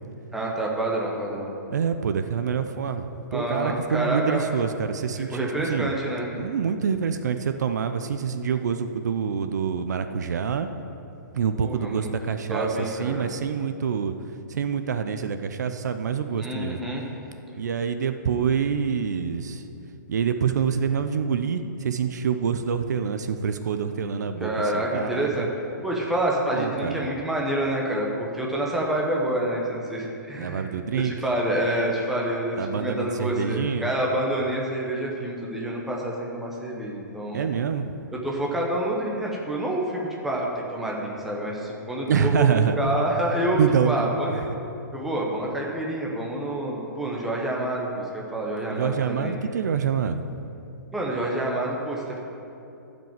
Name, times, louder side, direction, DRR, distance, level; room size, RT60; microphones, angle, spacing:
voice 1, 0.3-1.5 3.3-4.5 5.2-6.3 11.6-12.1 12.5-13.3 16.4-17.1 24.4-25.5 25.8-30.7 30.9-37.5 38.1-44.4 44.9-49.4 50.9-52.2, right 1 dB, ahead, -3 dB, 0.8 m, -27 dB
voice 2, 1.7-5.9 6.3-10.7 11.3-14.1 14.5-16.8 17.6-19.6 20.1-25.5 26.5-27.1 30.3-31.1 32.6-33.9 37.3-38.0 42.1-43.0 43.5-44.1 48.8-50.2, right 7 dB, 60° right, 9 dB, 0.6 m, -26 dB
12.5 x 5.2 x 7.4 m, 2.9 s
hypercardioid pair, 175°, 10 cm